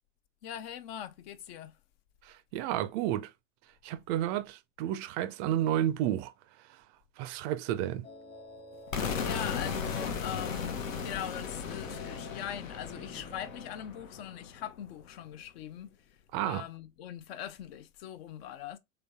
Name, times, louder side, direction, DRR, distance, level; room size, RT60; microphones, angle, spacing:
voice 1, 0.4-1.8 8.9-15.9 16.4-18.8, left 10 dB, 50° left, 0.6 m, -41 dB
voice 2, 2.2-3.3 3.8-6.3 6.7-6.8 7.2-8.1 16.3-16.6, right 12 dB, 40° right, 0.4 m, -31 dB
sound 1, 8.0-13.7, left 3 dB, 25° left, 1.3 m, -50 dB
sound 2, 8.9-14.8, left 6 dB, 75° left, 0.9 m, -36 dB
3.9 x 3.3 x 3.5 m
figure-of-eight pair, 90°, 40 cm